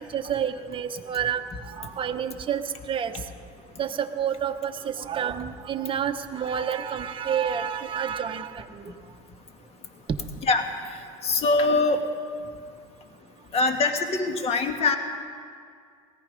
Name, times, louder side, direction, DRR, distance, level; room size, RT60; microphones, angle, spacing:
voice 1, 0.0-3.1 3.8-8.9, right 8 dB, 30° right, 6 dB, 1.0 m, -29 dB
voice 2, 11.2-12.0 13.5-15.0, left 3 dB, 35° left, 5 dB, 1.8 m, -23 dB
18.0 x 15.0 x 5.3 m, 2.2 s
supercardioid pair, 105°, 18 cm